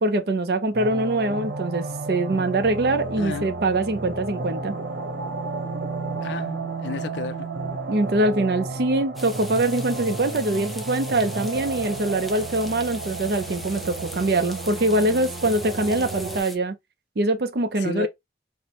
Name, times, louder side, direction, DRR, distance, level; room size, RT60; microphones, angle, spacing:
voice 1, 0.0-4.7 7.9-16.8 17.2-18.1, right 2 dB, 65° right, 0.5 m, -23 dB
sound 1, 0.7-16.4, right 3 dB, 90° right, 1.0 m, -32 dB
voice 2, 3.2-3.5 6.2-7.5 17.8-18.1, left 4 dB, 85° left, 0.4 m, -32 dB
sound 2, 9.2-16.6, equal, ahead, 0.3 m, -40 dB
4.5 x 2.1 x 2.9 m
head